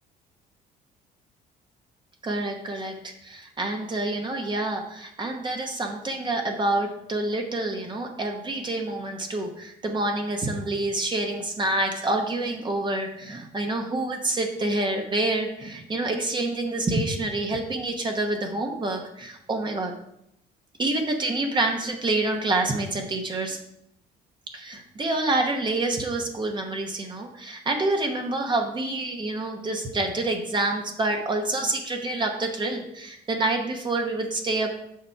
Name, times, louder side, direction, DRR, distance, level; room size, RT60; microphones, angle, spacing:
voice 1, 2.2-19.9 20.8-23.6 24.5-34.7, right 2 dB, 25° right, 3 dB, 0.9 m, -27 dB
6.5 x 5.3 x 4.6 m, 0.76 s
cardioid pair, 110°, 17 cm